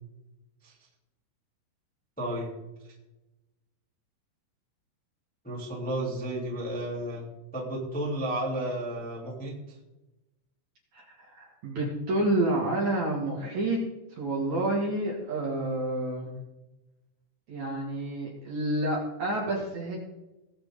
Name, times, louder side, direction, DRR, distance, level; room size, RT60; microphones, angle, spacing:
voice 1, 2.2-2.5 5.4-7.3 7.5-9.5, right 1 dB, 5° left, -4 dB, 1.8 m, -32 dB
voice 2, 11.3-13.8 14.1-16.4 17.5-20.0, right 2 dB, 50° right, -3 dB, 2.8 m, -29 dB
20.5 x 7.7 x 3.7 m, 0.99 s
omnidirectional pair, 5.6 m